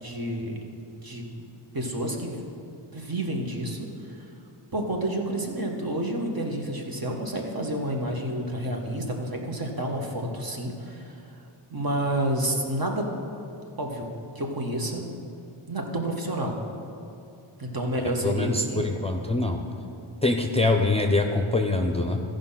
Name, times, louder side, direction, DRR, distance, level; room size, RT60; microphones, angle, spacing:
voice 1, 0.0-0.6 1.0-1.3 1.7-2.4 2.9-4.3 4.7-11.2 11.7-13.1 13.8-15.1 15.7-16.6 17.6-18.9, right 1 dB, 45° right, 1 dB, 1.5 m, -29 dB
voice 2, 18.2-19.7 20.2-22.2, left 2 dB, 10° left, 2 dB, 0.6 m, -24 dB
14.0 x 5.2 x 5.7 m, 2.7 s
wide cardioid pair, 55°, 50 cm